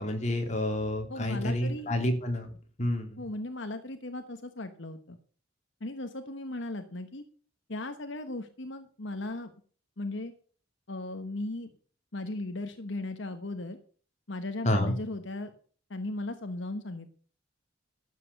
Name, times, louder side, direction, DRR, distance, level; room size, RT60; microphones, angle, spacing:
voice 1, 0.0-2.5 2.8-3.2 14.6-14.9, left 1 dB, 35° left, 3 dB, 3.0 m, -29 dB
voice 2, 1.1-1.9 3.2-5.2 5.8-7.2 7.7-9.5 10.0-10.3 10.9-11.7 12.1-13.8 14.3-15.5 15.9-17.1, left 2 dB, 70° left, 8 dB, 1.2 m, -37 dB
12.5 x 8.5 x 6.6 m, 0.43 s
head